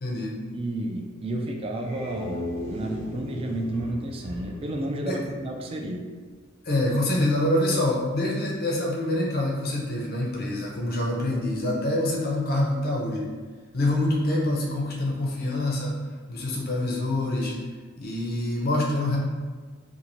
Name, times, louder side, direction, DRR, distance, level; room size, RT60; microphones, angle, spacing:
voice 1, 0.0-0.4 5.1-5.2 6.6-13.3 13.7-15.9 16.3-17.5 18.0-19.2, left 1 dB, 50° left, -2 dB, 0.6 m, -26 dB
voice 2, 0.5-2.4 2.7-6.1, right 1 dB, 25° right, 2 dB, 0.3 m, -31 dB
sound 1, 1.6-5.8, equal, 85° right, 0.9 m, -37 dB
2.6 x 2.4 x 2.9 m, 1.4 s
head